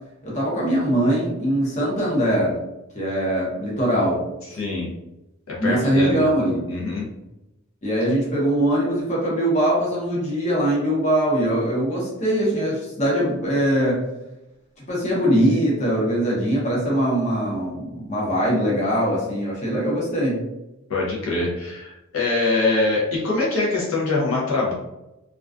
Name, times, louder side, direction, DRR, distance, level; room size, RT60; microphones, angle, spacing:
voice 1, 0.2-2.6 2.9-4.2 4.5-4.6 5.6-6.6 7.8-14.0 14.9-20.4, right 1 dB, 35° left, -5 dB, 0.8 m, -22 dB
voice 2, 4.6-4.9 5.5-6.2 6.7-7.1 20.9-24.7, left 3 dB, 70° left, -4 dB, 0.6 m, -23 dB
2.4 x 2.2 x 2.4 m, 0.94 s
head